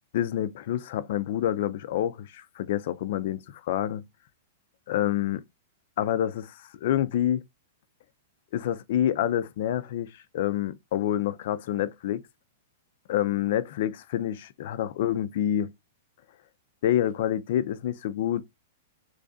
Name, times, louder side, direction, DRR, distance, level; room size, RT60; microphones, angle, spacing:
voice 1, 0.1-4.0 4.9-5.4 6.0-7.4 8.5-12.2 13.1-15.7 16.8-18.4, left 11 dB, 55° left, 0.4 m, -27 dB
3.1 x 2.6 x 3.6 m
supercardioid pair, 160°, 0 cm